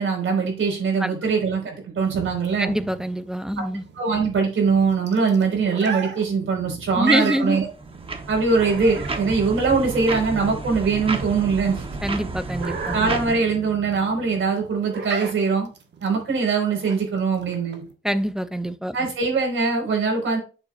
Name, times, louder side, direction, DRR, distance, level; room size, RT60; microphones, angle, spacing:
voice 1, 0.0-2.7 3.6-3.7 3.9-7.7 8.3-11.8 12.9-15.7 16.0-17.8 18.9-20.4, right 4 dB, 80° right, 4.7 m, -22 dB
sound 1, 2.0-17.9, right 5 dB, 60° right, 1.4 m, -35 dB
voice 2, 2.6-3.8 7.0-7.6 12.0-13.0 18.0-19.0, equal, 5° right, 0.5 m, -25 dB
sound 2, 7.6-13.4, right 3 dB, 25° right, 1.0 m, -31 dB
9.0 x 7.6 x 2.5 m
wide cardioid pair, 170°, 20 cm